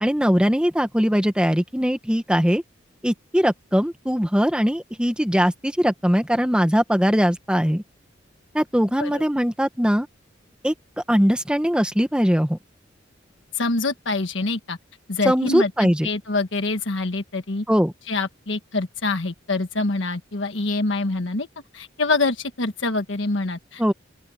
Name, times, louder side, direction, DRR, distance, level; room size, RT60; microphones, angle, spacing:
voice 1, 0.0-2.6 3.0-7.8 8.5-10.1 10.6-10.7 11.1-12.6 15.2-16.1 17.7-17.9 23.8-23.9, equal, 5° right, 1.5 m, -20 dB
voice 2, 13.5-14.8 15.1-17.6 18.1-21.5 21.7-23.8, left 3 dB, 85° left, 1.4 m, -25 dB
open air
head